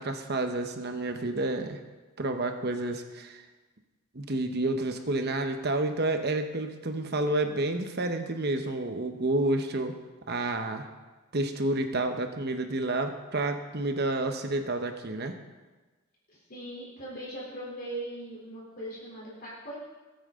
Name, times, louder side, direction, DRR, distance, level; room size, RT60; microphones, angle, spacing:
voice 1, 0.0-1.8 2.2-3.4 4.1-9.9 10.3-10.8 11.3-15.3, right 2 dB, 45° right, 6 dB, 1.0 m, -29 dB
voice 2, 16.3-19.8, right 1 dB, 40° left, -6 dB, 3.6 m, -40 dB
20.0 x 8.9 x 3.8 m, 1.2 s
head